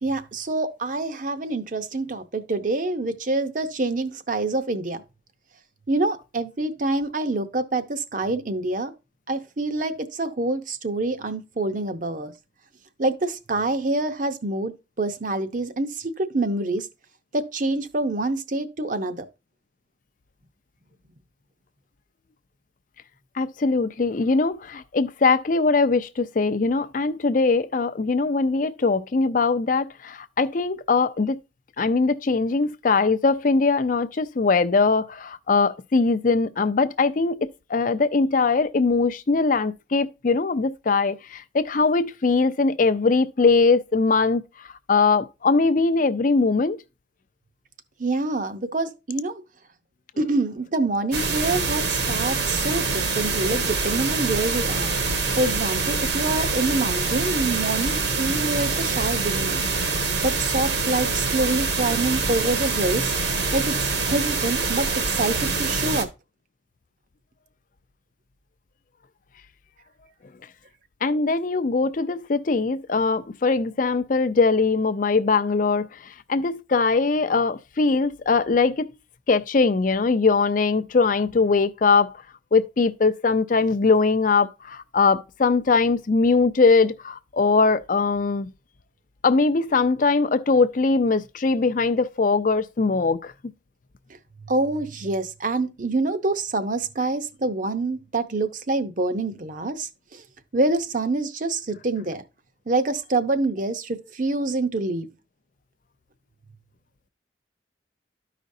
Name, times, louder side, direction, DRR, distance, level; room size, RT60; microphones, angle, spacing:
voice 1, 0.0-5.0 5.9-8.9 9.3-12.3 13.0-14.7 15.0-16.9 17.3-19.2 48.0-49.4 50.2-54.9 55.4-59.6 60.2-63.1 63.5-63.8 64.1-66.1 94.5-100.2 100.5-102.2 102.7-105.1, right 2 dB, 45° right, 0.8 m, -26 dB
voice 2, 23.4-31.4 31.8-44.4 44.9-46.8 71.0-75.9 76.3-78.9 79.3-82.1 82.5-88.5 89.2-93.3, left 4 dB, 45° left, 0.5 m, -21 dB
sound 1, 51.1-66.0, right 4 dB, 60° right, 1.2 m, -25 dB
13.0 x 5.1 x 2.7 m
head